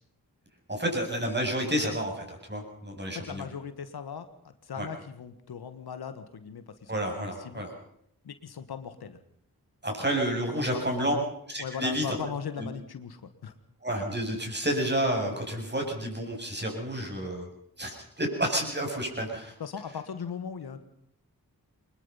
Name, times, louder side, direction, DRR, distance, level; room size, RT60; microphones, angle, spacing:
voice 1, 0.7-3.5 4.8-4.9 6.9-7.7 9.8-11.1 11.5-12.2 12.6-12.7 13.8-17.5 17.8-19.5, right 1 dB, 30° right, 2 dB, 7.9 m, -30 dB
voice 2, 3.1-6.9 7.2-7.6 8.2-9.2 10.6-11.2 11.6-13.5 19.6-20.8, left 7 dB, 90° left, 10 dB, 1.5 m, -38 dB
23.5 x 21.0 x 5.7 m, 0.70 s
cardioid pair, 50°, 37 cm